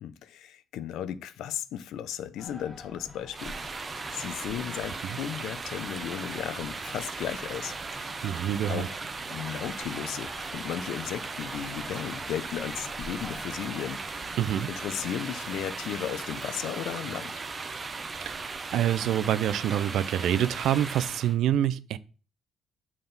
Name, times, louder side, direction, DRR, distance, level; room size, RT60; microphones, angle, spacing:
voice 1, 0.0-3.8 4.1-8.2 8.7-9.0 9.3-14.3 14.7-17.3, left 10 dB, 85° left, 0.5 m, -35 dB
sound 1, 2.4-14.7, left 2 dB, 15° left, 1.5 m, -48 dB
sound 2, 3.3-21.4, right 4 dB, 35° right, 0.7 m, -37 dB
voice 2, 8.2-8.9 14.4-14.7 18.4-22.0, right 11 dB, 80° right, 0.4 m, -26 dB
sound 3, 9.6-17.3, right 3 dB, 60° right, 2.0 m, -53 dB
6.8 x 3.6 x 3.9 m
cardioid pair, 90°, 0 cm